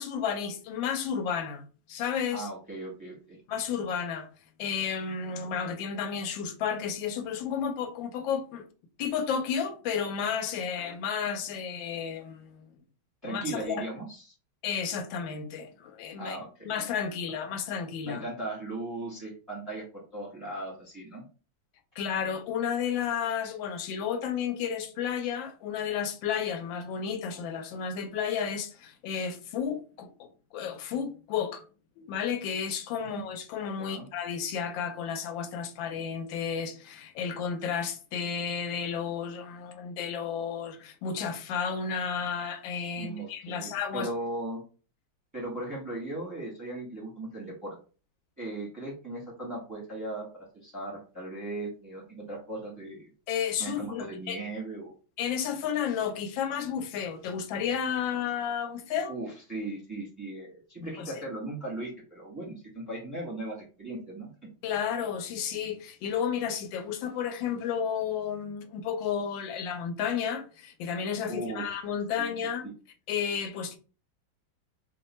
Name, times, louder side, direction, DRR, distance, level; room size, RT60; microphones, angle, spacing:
voice 1, 0.0-2.5 3.5-4.3 4.6-8.7 9.0-12.7 13.2-13.9 14.6-16.4 16.6-18.2 22.0-30.3 30.5-31.6 32.0-44.1 53.3-54.4 55.2-59.1 61.1-61.2 64.6-72.7 73.1-73.8, left 7 dB, 80° left, 1.3 m, -32 dB
voice 2, 2.3-3.4 13.2-14.3 16.2-16.7 18.0-21.2 33.0-33.3 33.8-34.1 43.0-44.6 45.3-47.8 48.4-50.3 50.6-53.1 53.6-54.9 59.1-64.3 71.3-71.6 72.2-72.3, right 2 dB, 15° right, 0.7 m, -37 dB
3.2 x 2.2 x 4.0 m
omnidirectional pair, 2.1 m